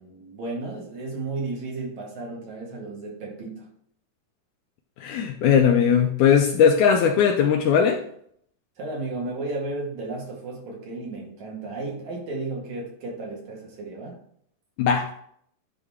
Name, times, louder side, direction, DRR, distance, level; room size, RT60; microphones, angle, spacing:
voice 1, 0.0-3.7 8.8-14.2, right 2 dB, 60° right, -2 dB, 2.9 m, -33 dB
voice 2, 5.0-8.0 14.8-15.1, left 7 dB, 80° left, 4 dB, 1.9 m, -19 dB
9.9 x 4.0 x 3.5 m, 0.66 s
omnidirectional pair, 3.9 m